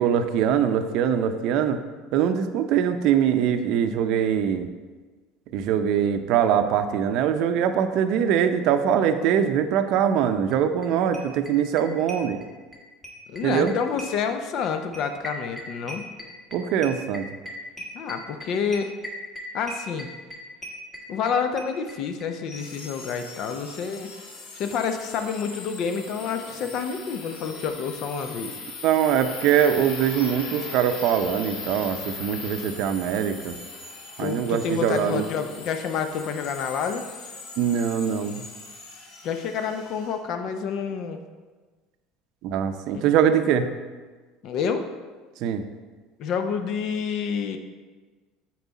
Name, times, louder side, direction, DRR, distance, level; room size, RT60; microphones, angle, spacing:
voice 1, 0.0-1.8 2.1-4.7 5.5-12.4 13.4-13.7 16.5-17.3 28.8-33.5 34.2-35.2 37.6-38.4 42.4-43.7 45.4-45.6, right 8 dB, 65° right, 9 dB, 0.6 m, -22 dB
sound 1, 10.5-10.6 10.8-10.9 11.1-12.8 13.0-22.3 22.5-22.6 22.8-22.9 23.1-23.2, equal, 15° left, 1.4 m, -38 dB
voice 2, 13.3-16.0 17.9-18.9 19.5-20.1 21.1-24.1 24.5-28.6 34.2-37.0 39.2-41.2 42.9-43.1 44.4-44.9 46.2-47.6, left 6 dB, 55° left, 7 dB, 0.7 m, -28 dB
sound 2, 22.5-40.1, left 3 dB, 80° left, 1.5 m, -40 dB
8.2 x 4.6 x 4.1 m, 1.4 s
supercardioid pair, 120°, 0 cm